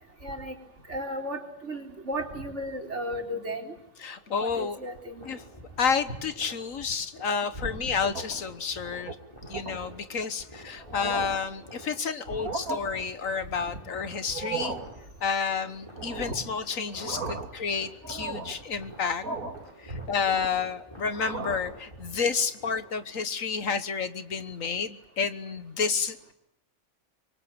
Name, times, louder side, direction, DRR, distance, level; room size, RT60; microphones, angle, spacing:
voice 1, 0.2-0.6 0.9-3.7 4.4-5.3 7.6-7.9 16.3-16.4 17.2-17.3 19.9-20.1, equal, 55° right, 2 dB, 4.0 m, -35 dB
voice 2, 4.0-4.8 5.2-5.4 5.8-9.2 9.5-14.8 15.2-19.2 19.8-26.3, left 6 dB, 70° left, 11 dB, 1.7 m, -30 dB
sound 1, 4.5-23.2, equal, 20° left, 7.3 m, -50 dB
sound 2, 7.9-8.5 8.9-9.1 9.5-9.8 10.4-10.5 10.8-11.5 12.2-12.8 14.2-14.9 16.0-16.5 16.9-17.6 18.0-18.6 19.2-19.7 20.0-20.7 21.1-21.7, right 3 dB, 80° right, 3.0 m, -36 dB
25.5 x 23.5 x 8.7 m, 0.78 s
omnidirectional pair, 1.4 m